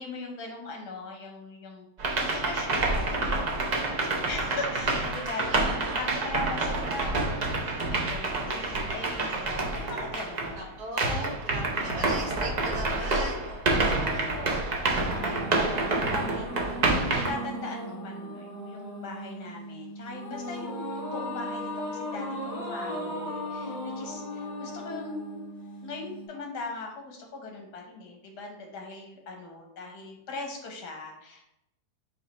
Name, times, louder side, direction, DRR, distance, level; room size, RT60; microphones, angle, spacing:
voice 1, 0.0-3.7 4.0-10.6 11.9-12.6 13.9-14.6 15.1-25.3 25.8-31.5, left 3 dB, 85° left, 1 dB, 1.6 m, -40 dB
sound 1, 2.0-10.6 11.0-17.3, right 2 dB, 55° right, 0.4 m, -28 dB
voice 2, 5.4-6.0 10.5-14.4, right 1 dB, 85° right, -2 dB, 1.7 m, -39 dB
sound 2, 14.9-26.3, equal, 30° left, 0.9 m, -37 dB
4.9 x 2.6 x 4.1 m, 0.82 s
omnidirectional pair, 1.7 m